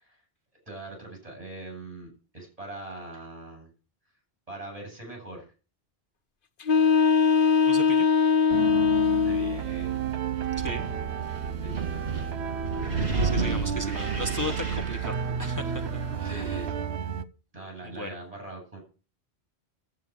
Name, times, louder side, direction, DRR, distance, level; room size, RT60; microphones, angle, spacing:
voice 1, 0.6-3.7 4.5-5.5 9.2-10.1 11.6-12.0 16.2-16.9 17.5-18.8, right 2 dB, 35° right, 1 dB, 7.9 m, -41 dB
sound 1, 6.6-9.6, left 6 dB, 55° left, 1.0 m, -21 dB
voice 2, 7.7-8.1 10.6-10.8 13.2-15.8 16.2-16.7 17.9-18.1, left 1 dB, 15° left, 3 dB, 1.3 m, -35 dB
sound 2, 8.5-17.3, right 8 dB, 80° right, 1.1 m, -32 dB
Wind, 9.5-16.9, right 3 dB, 60° right, 2.2 m, -33 dB
11.0 x 8.2 x 7.2 m, 0.35 s
omnidirectional pair, 1.1 m